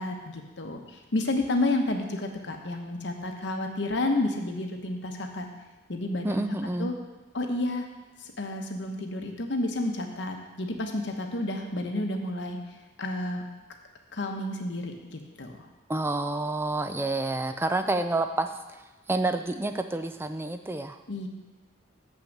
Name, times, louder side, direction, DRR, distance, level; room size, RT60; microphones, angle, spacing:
voice 1, 0.0-5.5 5.9-6.9 7.3-7.9 8.2-12.6 13.0-13.4 14.1-15.7 21.1-21.3, left 2 dB, 60° left, 3 dB, 0.9 m, -30 dB
voice 2, 6.2-6.9 15.9-18.6 19.1-21.0, right 2 dB, 10° right, 9 dB, 0.4 m, -28 dB
7.4 x 6.0 x 6.5 m, 1.1 s
head